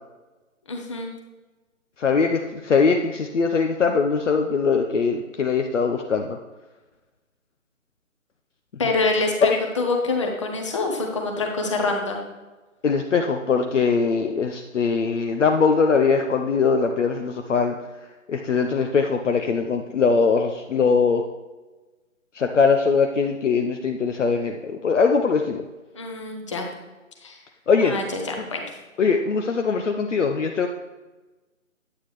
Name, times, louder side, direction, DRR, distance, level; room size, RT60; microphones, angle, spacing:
voice 1, 0.7-1.1 8.8-12.2 25.9-26.7 27.2-27.4 27.8-28.6, left 3 dB, 20° left, 2 dB, 1.0 m, -26 dB
voice 2, 2.0-6.4 12.8-17.8 18.3-21.2 22.3-25.6 27.7-27.9 29.0-30.7, left 5 dB, 60° left, 5 dB, 0.8 m, -21 dB
9.7 x 8.6 x 3.2 m, 1.2 s
hypercardioid pair, 160°, 40 cm